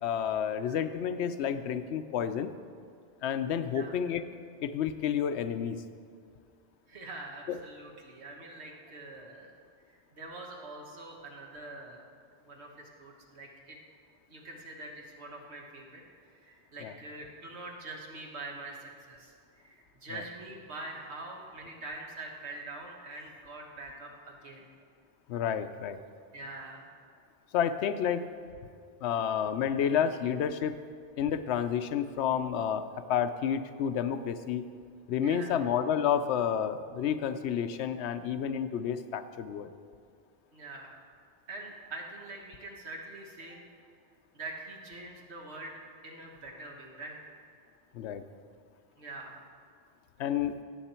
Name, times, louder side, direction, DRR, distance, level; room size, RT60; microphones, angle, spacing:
voice 1, 0.0-2.5 3.2-4.2 4.6-5.8 7.5-7.6 16.8-16.9 20.1-20.2 25.3-26.0 27.5-28.3 29.0-30.7 31.2-34.6 35.1-39.7 47.9-48.2 50.2-50.6, left 8 dB, 80° left, 11 dB, 0.9 m, -30 dB
voice 2, 6.9-9.5 9.9-12.0 12.4-13.8 14.3-16.0 16.3-24.6 26.3-26.9 35.2-35.6 40.5-40.9 41.5-43.6 44.3-47.2 49.0-49.4, right 2 dB, 75° right, 0 dB, 1.8 m, -44 dB
17.0 x 7.4 x 4.4 m, 2.2 s
omnidirectional pair, 1.1 m